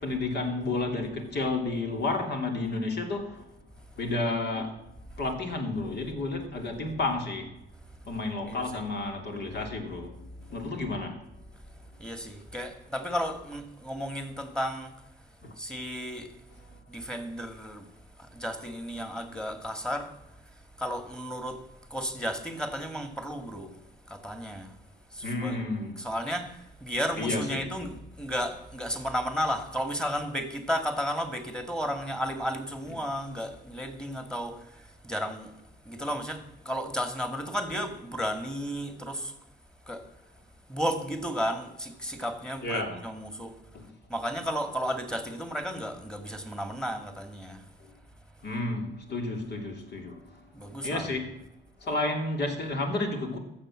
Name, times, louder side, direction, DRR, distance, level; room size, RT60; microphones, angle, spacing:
voice 1, 0.0-3.4 4.0-4.8 5.2-7.5 8.1-10.2 10.5-11.2 15.4-15.5 25.2-26.0 27.2-27.9 42.6-43.0 43.7-43.8 48.4-50.3 50.8-51.4 51.8-53.4, left 2 dB, 55° left, 2.9 m, -31 dB
voice 2, 8.4-8.8 12.0-14.9 15.6-16.3 16.9-17.9 18.2-20.1 20.8-21.6 21.9-23.7 24.1-24.8 25.1-25.6 26.0-35.5 35.9-39.3 39.9-40.0 40.7-43.6 44.1-47.6 50.5-51.2, equal, 5° left, 2.1 m, -33 dB
13.5 x 7.4 x 7.6 m
cardioid pair, 90°, 20 cm